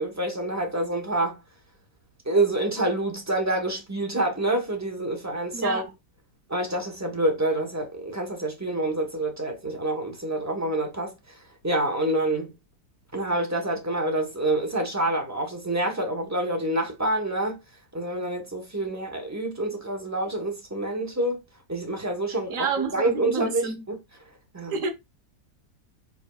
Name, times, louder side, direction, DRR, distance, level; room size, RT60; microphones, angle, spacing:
voice 1, 0.0-1.4 2.3-5.8 6.5-11.1 11.6-12.5 13.1-17.6 17.9-21.4 21.7-22.7 22.9-24.0 24.5-24.7, right 1 dB, 25° right, 0.4 m, -27 dB
voice 2, 5.5-5.9 22.5-23.8 24.7-24.9, right 5 dB, 55° right, 1.2 m, -29 dB
4.6 x 4.3 x 2.3 m
omnidirectional pair, 1.9 m